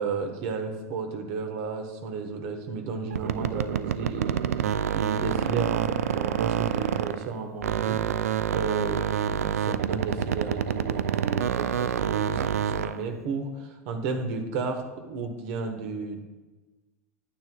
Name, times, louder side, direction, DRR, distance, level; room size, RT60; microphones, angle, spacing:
voice 1, 0.0-8.0 8.5-16.2, right 4 dB, 60° right, 5 dB, 1.3 m, -33 dB
sound 1, 3.1-7.3 7.6-13.0, right 9 dB, 85° right, 0.4 m, -27 dB
9.2 x 9.0 x 2.4 m, 1.2 s
hypercardioid pair, 95°, 8 cm